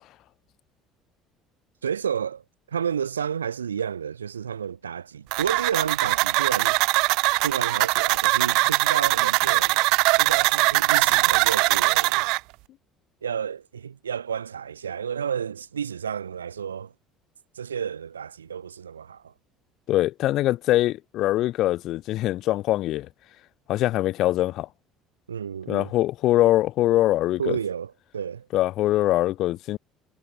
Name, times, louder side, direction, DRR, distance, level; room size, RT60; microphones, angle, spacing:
voice 1, 1.8-6.8 7.4-9.8 10.2-12.3 13.2-16.9 17.5-19.3 25.3-25.9 27.4-28.5, right 7 dB, 85° right, 4.3 m, -31 dB
sound 1, 5.3-12.4, right 25 dB, 65° right, 1.5 m, -21 dB
voice 2, 19.9-23.1 23.7-24.7 25.7-27.6 28.5-29.8, left 15 dB, 55° left, 2.8 m, -23 dB
figure-of-eight pair, 60°, 0 cm